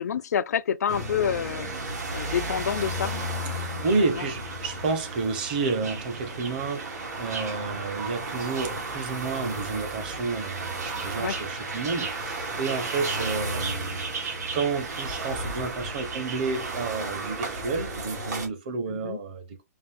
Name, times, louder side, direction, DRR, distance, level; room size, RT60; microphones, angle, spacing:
voice 1, 0.0-1.7 2.1-3.1 4.1-4.2 11.2-11.4 18.9-19.2, left 8 dB, 70° left, 0.4 m, -28 dB
sound 1, 0.9-18.5, right 2 dB, 85° right, 2.2 m, -34 dB
voice 2, 3.5-19.6, right 4 dB, 30° right, 0.7 m, -30 dB
sound 2, 3.8-17.8, right 5 dB, 70° right, 1.8 m, -40 dB
4.9 x 2.4 x 3.5 m
hypercardioid pair, 175°, 9 cm